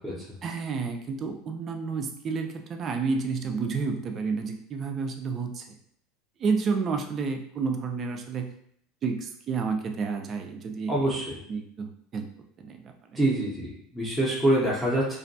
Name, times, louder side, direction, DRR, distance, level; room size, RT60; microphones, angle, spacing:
voice 1, 0.4-5.6 6.4-8.5 9.0-11.1 11.5-12.3 12.6-12.8 13.1-13.2, right 5 dB, 30° right, 5 dB, 0.3 m, -30 dB
voice 2, 10.9-11.2 13.2-15.2, right 1 dB, 5° left, -7 dB, 0.6 m, -25 dB
2.5 x 2.2 x 2.6 m, 0.66 s
supercardioid pair, 140°, 0 cm